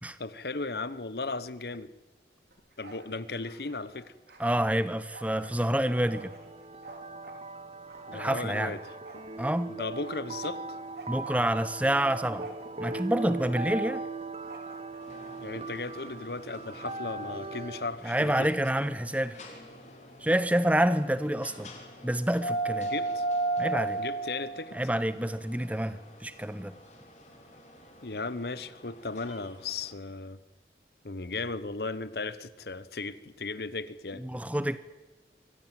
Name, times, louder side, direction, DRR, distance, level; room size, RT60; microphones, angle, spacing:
voice 1, 0.2-1.9 2.8-4.1 8.1-8.8 9.7-10.6 13.6-13.7 15.4-18.5 22.8-23.2 24.0-24.8 28.0-30.4 31.0-34.3, left 3 dB, 65° left, 1.1 m, -36 dB
Bark, 2.5-3.1 3.4-7.4 7.9-9.7 10.0-13.0 13.3-13.8 14.4-15.3, right 2 dB, 65° right, 4.0 m, -49 dB
voice 2, 4.4-6.3 8.1-8.7 9.4-9.7 11.1-12.5 12.8-14.0 18.0-19.4 20.2-21.7 22.0-22.9 23.6-24.0 24.7-26.7 34.2-34.8, right 1 dB, 10° right, 0.9 m, -28 dB
sound 1, 5.5-17.9, right 3 dB, 35° right, 0.8 m, -40 dB
sound 2, 15.0-29.9, right 2 dB, 40° left, 3.8 m, -38 dB
25.0 x 16.0 x 9.2 m
head